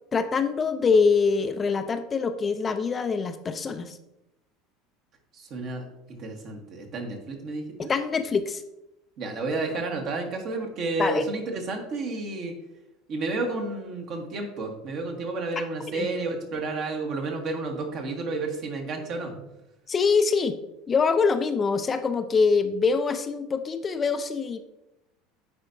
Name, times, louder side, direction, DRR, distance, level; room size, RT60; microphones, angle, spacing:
voice 1, 0.1-4.0 7.8-8.6 11.0-11.2 15.9-16.1 19.9-20.6 20.9-24.6, left 5 dB, 30° left, 9 dB, 0.5 m, -24 dB
voice 2, 5.3-7.9 9.2-12.5 13.1-19.5, right 3 dB, 50° right, 2 dB, 1.4 m, -31 dB
9.8 x 4.3 x 2.6 m, 0.91 s
hypercardioid pair, 75°, 0 cm